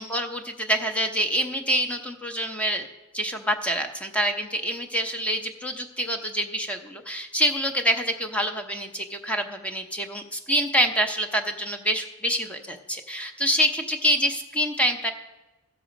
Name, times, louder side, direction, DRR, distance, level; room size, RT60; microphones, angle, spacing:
voice 1, 0.0-2.9 3.1-15.1, equal, 5° left, 5 dB, 0.8 m, -26 dB
14.0 x 6.9 x 5.1 m, 1.1 s
head